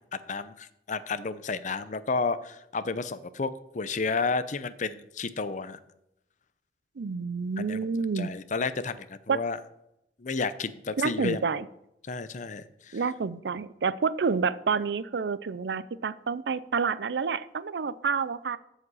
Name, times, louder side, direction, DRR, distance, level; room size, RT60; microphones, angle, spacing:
voice 1, 0.3-5.8 7.7-7.8 8.2-9.6 10.2-11.4 12.1-13.0, left 4 dB, 45° left, 13 dB, 0.6 m, -31 dB
voice 2, 7.0-8.3 9.3-9.4 11.0-11.7 12.9-18.6, right 5 dB, 70° right, 17 dB, 0.5 m, -29 dB
14.0 x 5.1 x 5.5 m, 0.82 s
head